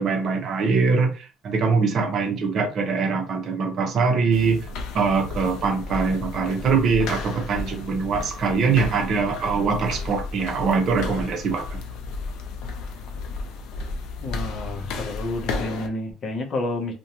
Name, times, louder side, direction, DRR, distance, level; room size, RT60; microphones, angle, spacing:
voice 1, 0.0-4.7 4.9-11.8, right 5 dB, 40° right, 0.6 m, -23 dB
sound 1, 4.3-15.9, left 3 dB, 75° left, 0.5 m, -33 dB
voice 2, 14.2-16.9, left 2 dB, 35° left, 0.7 m, -30 dB
2.5 x 2.1 x 2.9 m
cardioid pair, 165°, 0 cm